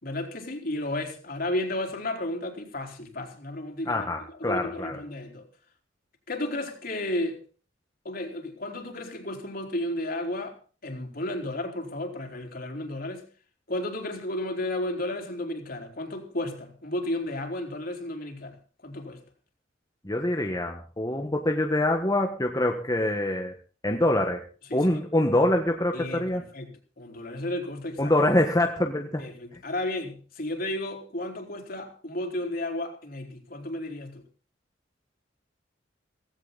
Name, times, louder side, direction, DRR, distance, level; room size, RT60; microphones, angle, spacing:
voice 1, 0.0-4.1 4.3-5.5 6.3-7.4 8.0-13.2 13.7-18.6 18.8-19.2 24.7-24.9 25.9-28.1 29.2-34.2, left 1 dB, 50° left, 4.3 m, -33 dB
voice 2, 3.9-5.0 20.0-23.5 23.8-24.4 24.7-26.4 28.0-29.2, left 1 dB, 20° left, 1.5 m, -25 dB
18.0 x 16.5 x 4.1 m
head